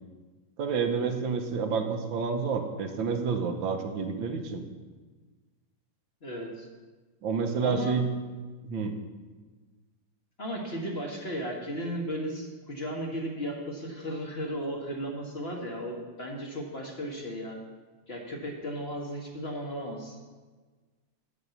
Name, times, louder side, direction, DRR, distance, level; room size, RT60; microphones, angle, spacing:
voice 1, 0.6-4.6 7.2-8.1 8.6-8.9, right 5 dB, 80° right, 5 dB, 1.7 m, -29 dB
voice 2, 6.2-6.7 7.6-8.0 10.4-17.6 18.1-20.2, equal, 35° left, 0 dB, 1.5 m, -35 dB
9.0 x 5.8 x 8.2 m, 1.4 s
omnidirectional pair, 2.1 m